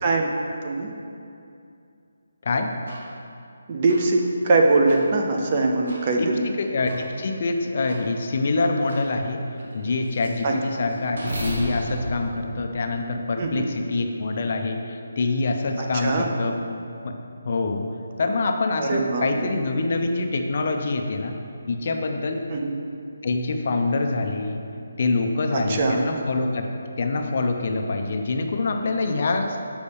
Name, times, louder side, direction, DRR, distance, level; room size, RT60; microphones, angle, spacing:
voice 1, 0.0-0.3 0.6-0.9 3.7-6.4 10.4-10.6 13.4-13.7 15.8-16.3 18.8-19.5 22.5-22.8 25.5-26.0, right 3 dB, 25° right, 1 dB, 0.5 m, -22 dB
voice 2, 2.4-2.7 6.2-9.4 9.7-16.6 17.0-17.1 17.5-17.9 18.2-21.3 21.7-22.4 23.2-24.6 25.0-26.7 27.0-29.6, left 3 dB, 40° left, 4 dB, 0.4 m, -25 dB
sound 1, 2.9-3.0 3.9-4.0 4.9-5.0 5.9-6.0 6.9-7.0 7.9-8.0 8.9-9.0 9.6-13.4, equal, 65° right, 1.4 m, -35 dB
6.8 x 5.2 x 3.4 m, 2.6 s
hypercardioid pair, 170°, 0 cm